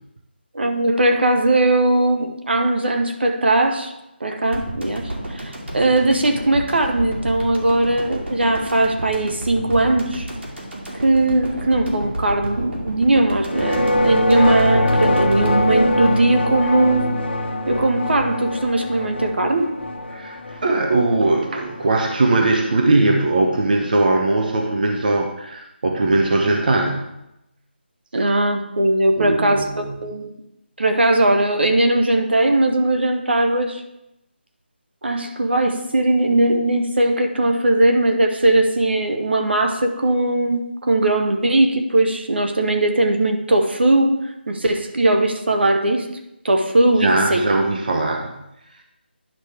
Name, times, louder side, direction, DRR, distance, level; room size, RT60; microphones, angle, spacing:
voice 1, 0.5-3.9 4.2-10.3 11.0-17.1 17.7-19.7 28.1-30.3 30.8-33.8 35.0-44.2 44.5-46.1 46.4-47.4, right 2 dB, 70° right, 5 dB, 1.1 m, -19 dB
sound 1, 4.5-16.9 17.1-17.2, right 1 dB, 85° right, 2.5 m, -31 dB
sound 2, 13.4-22.1, left 1 dB, 70° left, 1.2 m, -23 dB
voice 2, 20.1-27.0 29.2-30.1 47.0-48.4, right 2 dB, 50° right, 3 dB, 0.9 m, -20 dB
10.0 x 6.1 x 3.5 m, 0.87 s
figure-of-eight pair, 170°, 6 cm